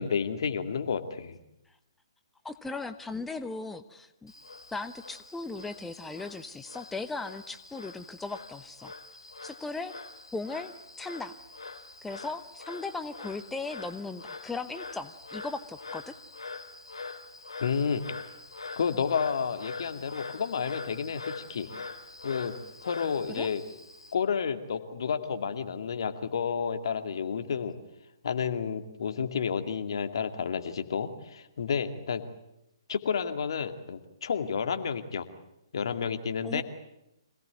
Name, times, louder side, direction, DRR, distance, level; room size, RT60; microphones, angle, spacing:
voice 1, 0.0-1.4 17.6-18.0 18.8-21.7 22.2-22.5 22.8-23.6 24.1-27.7 28.2-32.2 32.9-35.3 35.7-36.6, left 6 dB, 60° left, 7 dB, 2.3 m, -30 dB
voice 2, 2.4-4.3 4.7-8.9 9.4-9.9 10.3-11.4 12.0-16.1 23.3-23.5 36.4-36.6, left 3 dB, 5° left, 9 dB, 0.9 m, -37 dB
Frog, 4.3-24.1, left 3 dB, 80° left, 2.5 m, -44 dB
26.0 x 18.0 x 9.2 m, 0.88 s
figure-of-eight pair, 130°, 3 cm